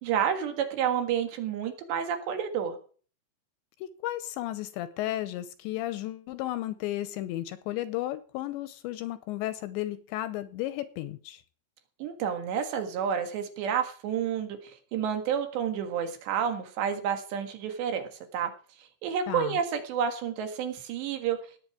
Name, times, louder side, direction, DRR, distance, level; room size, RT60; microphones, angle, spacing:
voice 1, 0.0-2.8 12.0-18.5 19.0-21.4, right 8 dB, 70° right, 6 dB, 3.7 m, -30 dB
voice 2, 3.8-11.4 19.3-19.6, left 14 dB, 80° left, 13 dB, 2.8 m, -34 dB
18.0 x 8.9 x 4.9 m, 0.42 s
omnidirectional pair, 5.5 m